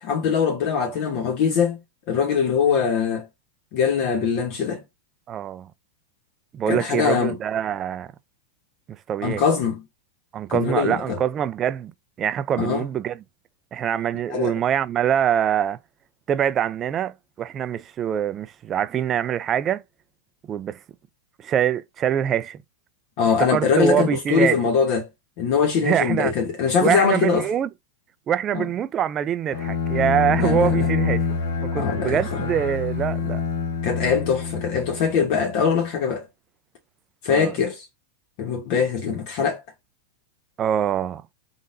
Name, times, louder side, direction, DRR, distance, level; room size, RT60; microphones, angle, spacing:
voice 1, 0.0-1.8 2.1-3.3 3.7-4.8 6.7-7.4 9.2-9.8 10.5-11.2 12.6-12.8 14.3-14.5 23.2-25.1 25.4-27.5 28.5-28.7 30.4-30.9 31.8-32.5 33.8-36.3 37.2-37.9 38.4-39.6, left 6 dB, 50° left, 1.1 m, -22 dB
voice 2, 5.3-5.7 6.5-8.1 8.9-9.4 10.3-11.9 12.2-13.2 13.7-15.8 16.3-19.8 20.5-20.8 21.4-22.6 23.5-24.6 25.8-26.3 26.8-27.7 28.3-31.3 31.6-33.4 37.3-37.5 40.6-41.2, right 9 dB, 25° right, 0.4 m, -24 dB
Bowed string instrument, 29.5-35.3, left 5 dB, 70° left, 1.3 m, -26 dB
3.9 x 3.8 x 2.6 m
supercardioid pair, 140°, 0 cm